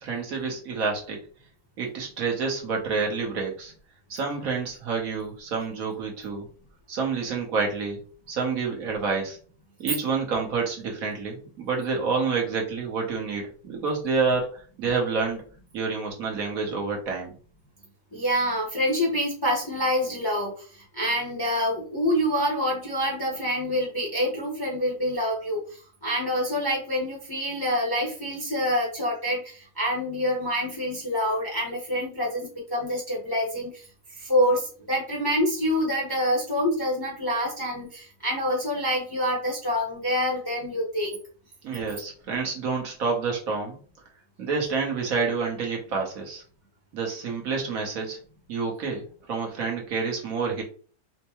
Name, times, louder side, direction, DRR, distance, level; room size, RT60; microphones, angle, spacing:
voice 1, 0.0-1.2 1.8-3.7 4.1-6.4 6.9-8.0 8.3-9.4 9.8-15.4 15.7-17.3 41.6-43.8 44.4-46.4 46.9-48.2 48.5-50.6, right 4 dB, 65° right, 0 dB, 1.3 m, -28 dB
voice 2, 18.1-20.5 20.9-25.6 26.0-33.8 34.2-41.2, equal, 20° left, -4 dB, 0.7 m, -26 dB
4.4 x 2.1 x 2.9 m, 0.41 s
omnidirectional pair, 1.7 m